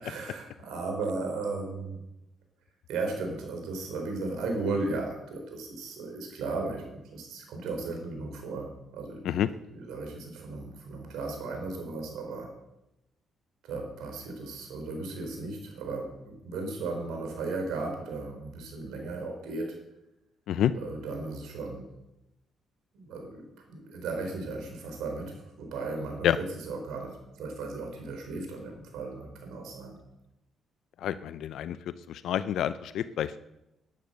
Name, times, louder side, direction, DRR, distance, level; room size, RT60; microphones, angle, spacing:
voice 1, 0.0-2.0 2.9-9.4 9.7-12.5 13.6-19.8 20.7-21.9 22.9-30.0, right 3 dB, 85° right, 3 dB, 4.1 m, -36 dB
voice 2, 31.0-31.8 32.1-33.4, left 10 dB, 75° left, 14 dB, 0.5 m, -28 dB
12.0 x 10.5 x 6.6 m, 0.90 s
cardioid pair, 90°, 0 cm